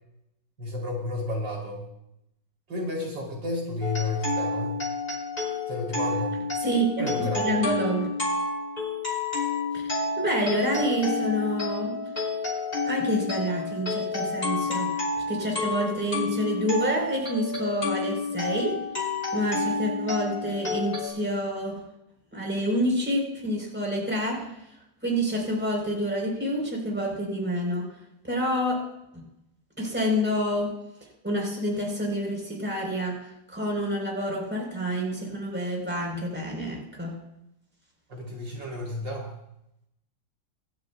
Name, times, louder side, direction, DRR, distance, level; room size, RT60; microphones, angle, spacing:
voice 1, 0.6-1.9 2.7-4.8 5.7-6.4 7.0-7.6 38.1-39.3, left 2 dB, 70° right, -2 dB, 4.0 m, -31 dB
sound 1, 3.8-21.1, left 3 dB, 25° left, 3.3 m, -30 dB
voice 2, 7.2-8.1 9.7-12.0 12.8-14.9 15.3-18.8 19.3-21.7 22.3-24.5 25.0-27.9 28.2-28.9 29.8-30.8 31.2-37.1, equal, 5° right, -2 dB, 4.0 m, -28 dB
25.5 x 11.5 x 2.3 m, 0.82 s
omnidirectional pair, 2.0 m